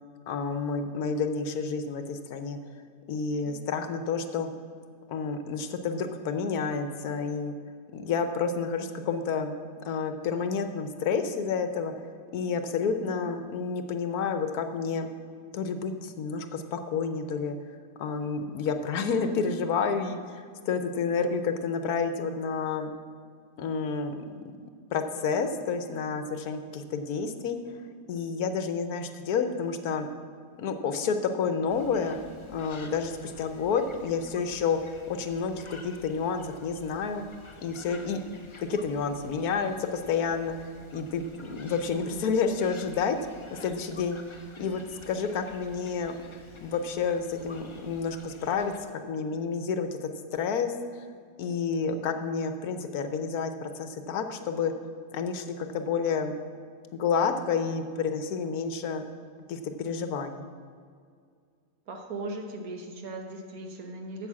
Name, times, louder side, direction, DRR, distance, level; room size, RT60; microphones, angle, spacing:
voice 1, 0.3-2.6 3.1-4.5 5.1-7.5 7.9-9.5 9.8-15.1 15.5-22.9 23.6-24.2 24.6-27.8 28.1-30.1 30.6-32.2 32.5-34.8 35.1-37.2 37.6-38.2 38.6-43.2 43.5-44.2 44.6-46.2 46.6-51.0 51.4-54.7 55.1-56.3 56.9-59.0 59.5-60.4, left 5 dB, 70° left, 8 dB, 1.2 m, -30 dB
sound 1, 31.7-48.8, left 3 dB, 35° left, 0.4 m, -51 dB
voice 2, 61.9-64.3, right 2 dB, 65° right, 3 dB, 1.6 m, -38 dB
8.4 x 7.3 x 7.4 m, 2.1 s
omnidirectional pair, 1.7 m